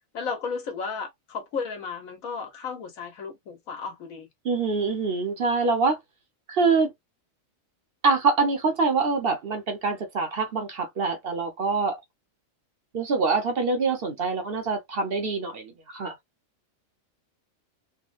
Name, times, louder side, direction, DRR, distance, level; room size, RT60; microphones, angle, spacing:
voice 1, 0.1-4.3, left 5 dB, 85° left, 1.5 m, -34 dB
voice 2, 4.4-6.0 6.5-6.9 8.0-12.0 12.9-16.1, right 4 dB, 50° right, 0.8 m, -25 dB
3.6 x 2.2 x 2.4 m
omnidirectional pair, 1.4 m